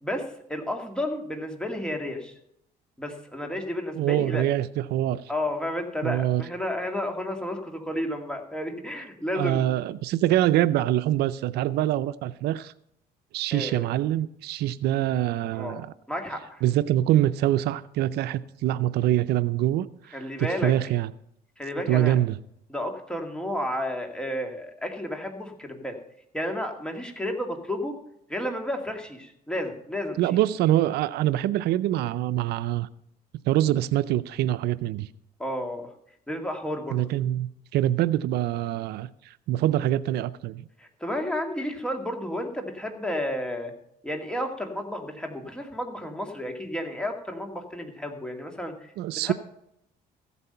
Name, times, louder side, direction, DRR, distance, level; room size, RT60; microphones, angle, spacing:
voice 1, 0.0-2.3 3.0-4.4 5.3-9.6 13.5-13.8 15.5-15.8 16.1-16.6 20.1-20.7 21.6-22.2 22.7-26.0 26.3-27.9 28.3-30.4 35.4-35.9 36.3-37.1 40.8-43.7 44.0-48.9 49.2-49.3, left 1 dB, 5° left, 2.2 m, -32 dB
voice 2, 3.9-5.2 6.0-6.4 9.3-12.7 13.3-15.9 16.6-21.1 21.9-22.4 30.2-32.9 33.5-35.1 36.9-40.6 49.0-49.3, right 13 dB, 75° right, 0.5 m, -25 dB
14.5 x 8.3 x 5.6 m
cardioid pair, 110°, 17 cm